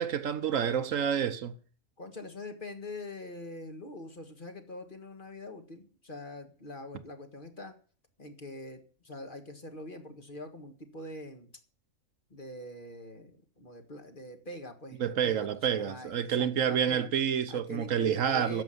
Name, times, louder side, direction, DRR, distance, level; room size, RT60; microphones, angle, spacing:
voice 1, 0.0-1.6 15.0-18.6, right 8 dB, 70° right, 1.2 m, -29 dB
voice 2, 2.0-7.7 8.2-11.5 12.3-17.1 17.5-18.6, left 1 dB, 40° left, 1.9 m, -44 dB
10.5 x 7.6 x 9.4 m
omnidirectional pair, 1.4 m